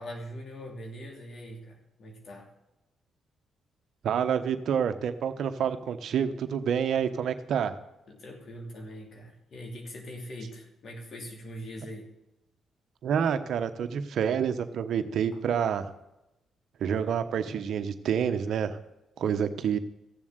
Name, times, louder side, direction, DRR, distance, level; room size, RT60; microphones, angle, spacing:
voice 1, 0.0-2.5 8.1-12.1 15.3-15.4, equal, 60° left, 1 dB, 2.9 m, -42 dB
voice 2, 4.0-7.8 13.0-15.9 16.8-18.8 19.2-19.8, right 8 dB, 70° right, 9 dB, 1.1 m, -28 dB
15.0 x 7.3 x 8.1 m, 0.94 s
hypercardioid pair, 50°, 0 cm